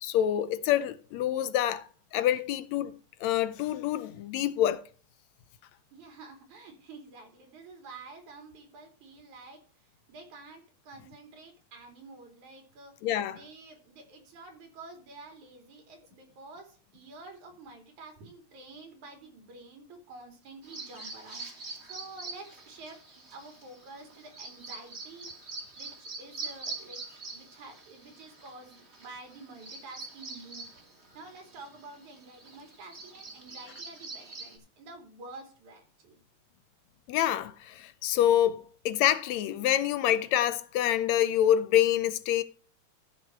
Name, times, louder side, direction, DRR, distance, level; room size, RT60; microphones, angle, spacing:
voice 1, 0.0-1.8 2.1-4.8 13.0-13.4 37.1-42.4, left 11 dB, 75° left, 2.0 m, -26 dB
voice 2, 5.9-9.6 10.1-13.0 13.3-21.5 21.8-25.3 25.8-27.0 27.3-30.7 31.1-36.2, right 3 dB, 85° right, 4.4 m, -49 dB
Bird vocalization bird call bird song, 20.6-34.6, right 3 dB, 25° right, 2.3 m, -44 dB
13.5 x 6.5 x 4.5 m
omnidirectional pair, 3.3 m